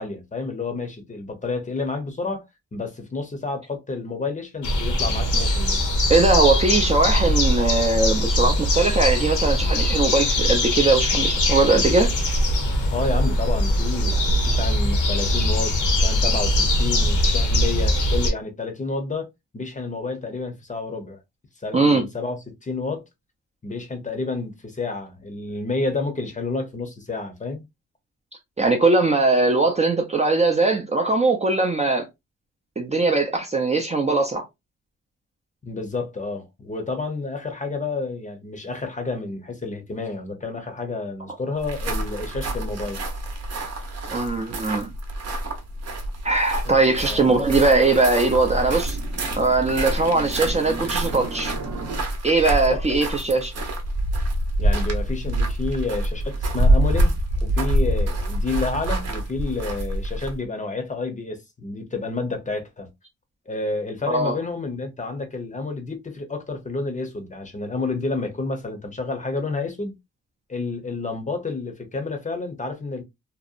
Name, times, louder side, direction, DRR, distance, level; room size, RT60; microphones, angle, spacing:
voice 1, 0.0-2.4 2.7-5.8 12.9-19.3 19.5-21.2 21.6-23.0 23.6-27.6 35.6-43.0 46.6-47.4 52.6-53.0 54.6-62.9 63.5-70.0 70.5-73.0, left 3 dB, 25° left, 0.7 m, -30 dB
sound 1, 4.6-18.3, left 1 dB, 75° left, 0.9 m, -21 dB
voice 2, 6.1-12.1 21.7-22.0 28.6-32.1 32.8-34.5 44.1-44.9 46.2-49.0 49.4-51.5 52.2-53.5 64.0-64.3, right 3 dB, 25° right, 0.4 m, -20 dB
sound 2, 41.6-60.4, right 1 dB, 55° right, 0.8 m, -26 dB
sound 3, 47.0-52.0, right 3 dB, 85° right, 0.8 m, -38 dB
2.8 x 2.0 x 2.4 m
cardioid pair, 100°, 30 cm